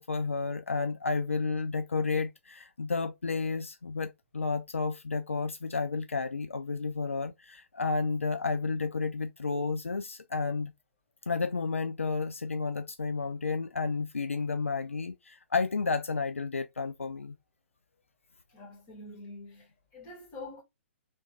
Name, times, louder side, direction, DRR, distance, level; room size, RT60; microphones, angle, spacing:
voice 1, 0.0-10.7 11.3-17.3, left 4 dB, 75° left, 0.4 m, -31 dB
voice 2, 18.5-20.6, left 2 dB, 25° left, 1.7 m, -46 dB
3.2 x 3.1 x 2.7 m
figure-of-eight pair, 125°, 7 cm